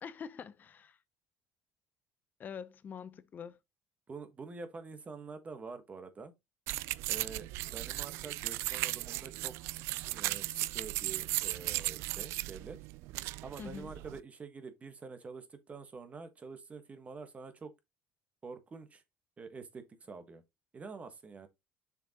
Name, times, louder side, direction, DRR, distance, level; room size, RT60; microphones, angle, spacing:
voice 1, 0.0-1.0 2.4-3.6 13.6-13.9, left 7 dB, 40° left, 0.7 m, -45 dB
voice 2, 4.1-6.3 7.1-9.5 10.1-12.8 13.4-17.7 18.4-19.0 19.4-20.4 20.7-21.5, right 4 dB, 30° right, 1.3 m, -47 dB
sound 1, 6.7-14.2, right 19 dB, 75° right, 0.3 m, -36 dB
6.8 x 5.2 x 2.9 m
supercardioid pair, 95°, 5 cm